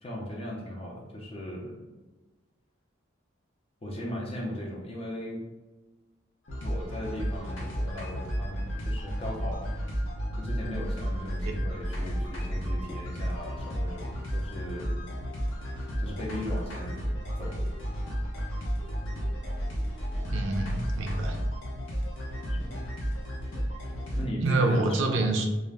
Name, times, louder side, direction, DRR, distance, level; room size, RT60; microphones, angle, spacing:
voice 1, 0.0-1.8 3.8-5.4 6.6-9.7 10.4-15.0 16.0-17.0 17.4-17.6 22.6-22.8 24.2-25.4, equal, 30° left, -2 dB, 0.4 m, -37 dB
sound 1, 6.5-24.2, equal, 80° left, 0.7 m, -32 dB
voice 2, 20.3-21.4 24.4-25.5, right 2 dB, 75° right, 3 dB, 0.3 m, -27 dB
2.4 x 2.0 x 3.2 m, 1.2 s
head